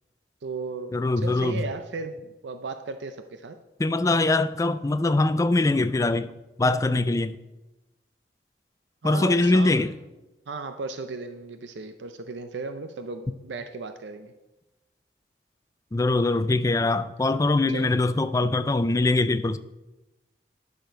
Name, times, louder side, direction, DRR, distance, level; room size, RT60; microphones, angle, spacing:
voice 1, 0.4-3.6 9.0-9.9 10.5-14.3 17.2-17.9, right 4 dB, 75° right, 0.6 m, -36 dB
voice 2, 0.9-1.6 3.8-6.3 6.6-7.4 9.0-9.9 15.9-19.6, left 2 dB, 15° left, 0.3 m, -22 dB
10.5 x 6.6 x 5.0 m
head